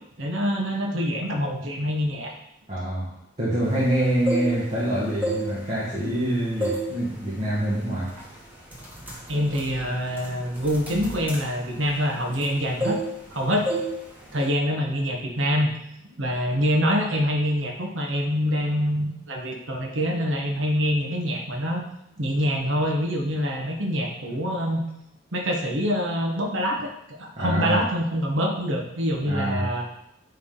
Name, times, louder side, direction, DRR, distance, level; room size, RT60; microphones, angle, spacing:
voice 1, 0.2-2.3 9.3-13.0 13.3-13.7 14.3-15.7 16.2-21.8 22.2-24.8 25.3-29.8, equal, 90° right, 0 dB, 1.3 m, -25 dB
voice 2, 2.7-8.2 27.4-27.8 29.2-29.7, right 1 dB, 40° right, -7 dB, 1.6 m, -26 dB
sound 1, 4.0-4.8 5.1-6.2 6.6-6.9 7.3-7.6 8.2-8.3 8.7-12.5 12.8-13.4 13.7-13.9 14.2-14.5, right 1 dB, 10° right, 1.7 m, -30 dB
9.9 x 3.7 x 3.8 m, 0.79 s
head